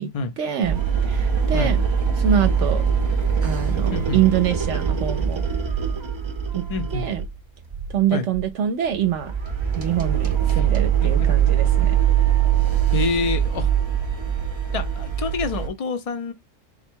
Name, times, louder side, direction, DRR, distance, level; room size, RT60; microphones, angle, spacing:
voice 1, 0.4-1.8 2.2-2.8 3.4-5.4 6.5-7.2 7.9-9.3 9.8-12.0, right 9 dB, 70° right, 0.9 m, -25 dB
sound 1, 0.6-7.4 7.7-8.0 8.3-8.5 8.9-15.7, right 8 dB, 30° right, 0.5 m, -22 dB
voice 2, 3.9-4.2 6.7-7.1 8.1-8.3 10.5-10.6 11.0-11.3 12.9-13.7 14.7-16.3, left 4 dB, 40° left, 0.5 m, -27 dB
4.2 x 2.2 x 4.4 m
omnidirectional pair, 1.3 m